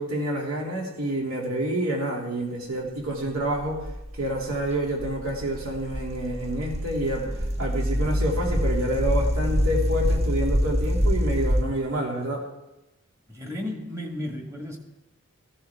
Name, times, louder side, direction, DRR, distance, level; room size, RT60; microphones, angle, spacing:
voice 1, 0.0-3.8 4.2-7.3 7.6-12.4, right 1 dB, 70° right, -1 dB, 2.6 m, -28 dB
sound 1, 3.2-11.6, equal, 30° right, 0.9 m, -26 dB
voice 2, 13.3-14.8, left 1 dB, 15° right, 2 dB, 1.5 m, -34 dB
14.5 x 11.0 x 3.5 m, 0.96 s
head